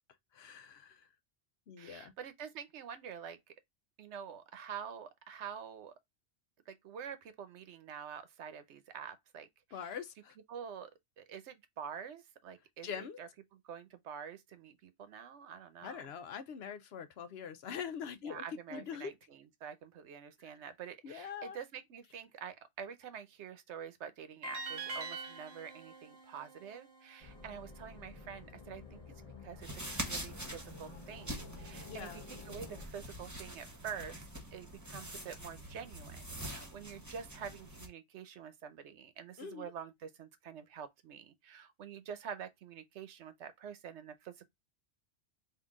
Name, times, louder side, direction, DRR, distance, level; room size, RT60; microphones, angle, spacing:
voice 1, 0.3-1.1 1.7-2.1 9.7-10.4 12.8-13.2 15.8-18.4 18.7-19.1 21.0-21.6 31.9-32.2 39.4-39.7, left 7 dB, 70° left, 0.8 m, -43 dB
voice 2, 1.8-3.5 4.0-5.9 6.7-10.0 10.5-16.0 18.2-29.0 29.4-44.5, right 7 dB, 85° right, 1.0 m, -47 dB
sound 1, 24.4-27.6, right 3 dB, 50° right, 0.5 m, -44 dB
sound 2, 27.2-32.9, left 3 dB, 35° left, 0.9 m, -52 dB
sound 3, 29.6-37.9, right 1 dB, 15° right, 1.1 m, -45 dB
3.8 x 2.6 x 3.6 m
omnidirectional pair, 1.2 m